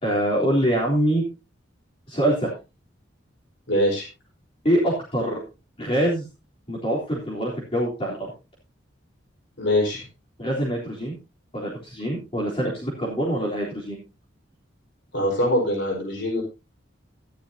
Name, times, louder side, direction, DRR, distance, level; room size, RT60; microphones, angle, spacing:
voice 1, 0.0-1.2 2.1-2.5 4.6-5.4 5.8-6.3 6.7-8.2 10.4-11.2 11.5-14.0, right 1 dB, 30° left, -5 dB, 3.7 m, -24 dB
voice 2, 3.7-4.1 9.6-10.0 15.1-16.4, left 1 dB, 70° left, -1 dB, 5.1 m, -23 dB
14.0 x 11.5 x 2.8 m, 0.28 s
head